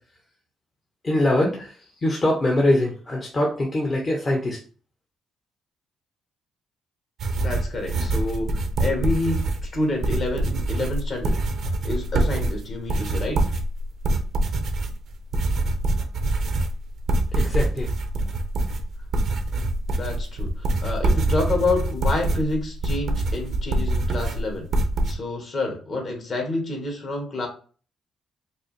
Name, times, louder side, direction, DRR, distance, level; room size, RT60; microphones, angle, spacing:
voice 1, 1.0-1.7 2.0-4.6 17.3-17.9, left 1 dB, 35° left, -1 dB, 0.9 m, -23 dB
sound 1, 7.2-25.1, right 2 dB, 65° right, 0.7 m, -25 dB
voice 2, 7.4-11.4 11.8-13.4 19.4-19.7 19.9-24.7 25.0-27.5, left 2 dB, 50° left, 1 dB, 1.6 m, -28 dB
5.2 x 2.1 x 3.2 m, 0.39 s
cardioid pair, 90°, 0 cm